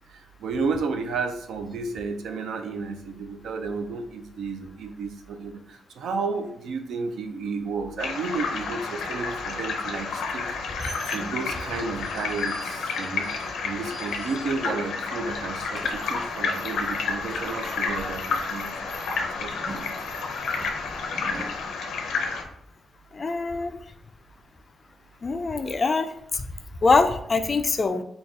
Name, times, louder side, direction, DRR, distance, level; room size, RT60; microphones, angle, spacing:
voice 1, 0.1-10.6 11.1-13.3 13.6-18.7 19.0-19.9 21.3-21.4, right 4 dB, 75° right, 6 dB, 0.5 m, -32 dB
sound 1, 8.0-22.4, left 4 dB, 90° left, 0.6 m, -30 dB
sound 2, 10.4-14.9 15.2-21.6, right 1 dB, 25° right, 0.8 m, -44 dB
voice 2, 23.1-23.8 25.2-26.4 26.8-28.0, left 3 dB, 30° left, 8 dB, 0.3 m, -23 dB
4.0 x 2.3 x 3.5 m, 0.70 s
cardioid pair, 145°, 0 cm